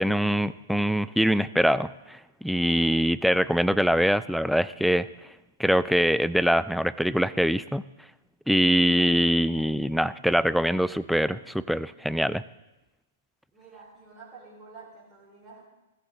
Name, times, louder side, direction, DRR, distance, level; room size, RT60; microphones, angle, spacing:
voice 1, 0.0-5.1 5.6-7.8 8.5-12.4, equal, ahead, 16 dB, 0.4 m, -23 dB
voice 2, 13.5-15.7, right 4 dB, 20° right, -7 dB, 4.7 m, -49 dB
16.0 x 14.0 x 3.9 m, 1.0 s
hypercardioid pair, 115°, 0 cm